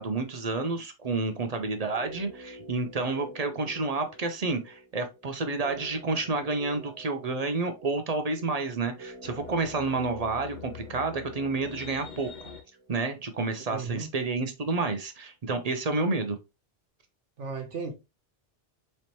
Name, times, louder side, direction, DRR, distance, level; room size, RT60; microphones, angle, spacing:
voice 1, 0.0-12.5 12.9-16.4, right 3 dB, 45° right, 0.5 m, -30 dB
sound 1, 1.8-14.0 14.2-14.3, right 2 dB, 65° right, 1.4 m, -49 dB
sound 2, 9.2-12.6, left 6 dB, 45° left, 0.9 m, -44 dB
voice 2, 13.7-14.1 17.4-17.9, right 4 dB, 80° right, 1.1 m, -34 dB
4.2 x 3.2 x 2.8 m
omnidirectional pair, 1.2 m